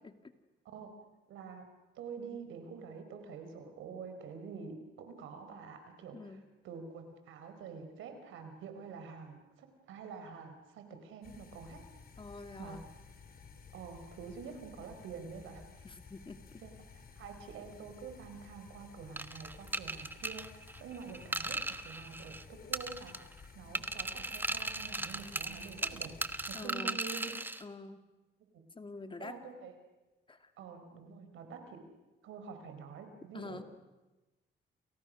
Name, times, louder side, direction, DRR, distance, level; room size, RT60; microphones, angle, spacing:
voice 1, 1.3-11.8 12.6-12.8 13.7-15.6 16.6-26.1 26.5-27.3 28.5-28.6 29.2-29.7 30.6-31.8 32.2-33.6, right 5 dB, 85° right, 7 dB, 4.5 m, -47 dB
sound 1, 11.2-26.5, left 5 dB, 50° left, 4.2 m, -55 dB
voice 2, 12.2-12.9 15.8-16.6 26.5-27.0 27.6-28.0 28.8-29.4 30.3-30.5 33.3-33.6, left 3 dB, 25° left, 8 dB, 2.2 m, -46 dB
sound 2, 19.2-22.4 22.7-23.4 23.7-27.6, right 2 dB, 10° right, 1.3 m, -37 dB
29.0 x 29.0 x 6.4 m, 1.1 s
cardioid pair, 90°, 20 cm